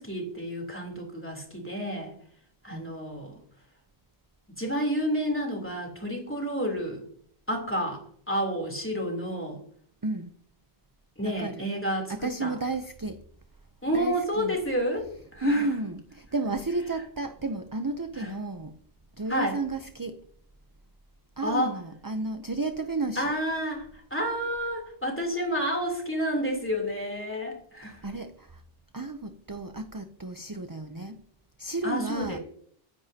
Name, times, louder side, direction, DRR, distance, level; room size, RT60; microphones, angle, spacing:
voice 1, 0.0-2.1 2.6-3.4 4.6-7.0 7.5-9.6 11.2-12.5 13.8-15.7 18.2-18.3 19.3-19.6 21.4-21.8 23.2-28.0 31.8-32.4, equal, 10° left, 0 dB, 3.3 m, -30 dB
voice 2, 11.2-11.7 12.1-13.2 13.9-14.6 15.4-18.7 19.2-20.2 21.4-23.3 27.8-28.6 28.9-31.2 31.6-32.4, right 3 dB, 25° right, 8 dB, 0.6 m, -32 dB
23.5 x 10.0 x 2.9 m, 0.63 s
omnidirectional pair, 1.1 m